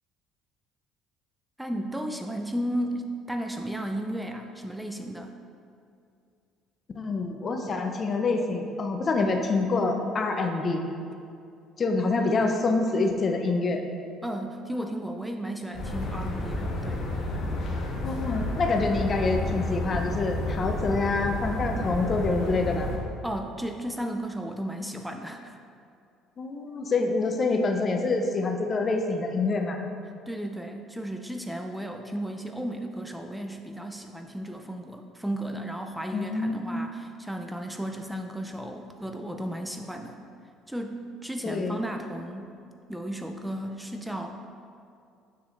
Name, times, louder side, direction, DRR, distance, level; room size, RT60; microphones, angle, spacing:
voice 1, 1.6-5.3 14.2-17.0 23.2-25.6 30.3-40.2 40.7-42.5 42.9-44.4, right 1 dB, 5° right, 4 dB, 0.5 m, -34 dB
voice 2, 6.9-10.8 11.8-13.9 18.0-22.9 26.4-29.8 36.1-36.9 41.4-41.8, left 3 dB, 40° left, 4 dB, 0.7 m, -26 dB
sound 1, 15.7-23.0, left 1 dB, 60° left, 1.3 m, -31 dB
6.8 x 6.8 x 2.5 m, 2.5 s
hypercardioid pair, 70°, 0 cm